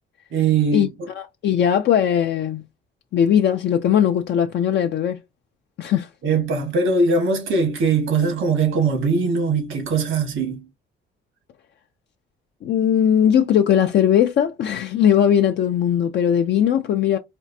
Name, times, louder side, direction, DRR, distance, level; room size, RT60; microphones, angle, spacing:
voice 1, 0.3-0.9 6.2-10.7, right 4 dB, 80° right, 1.4 m, -21 dB
voice 2, 1.2-2.6 3.1-5.2 5.8-6.1 12.6-17.2, left 9 dB, 60° left, 0.4 m, -19 dB
4.3 x 2.4 x 2.6 m
cardioid pair, 90°, 20 cm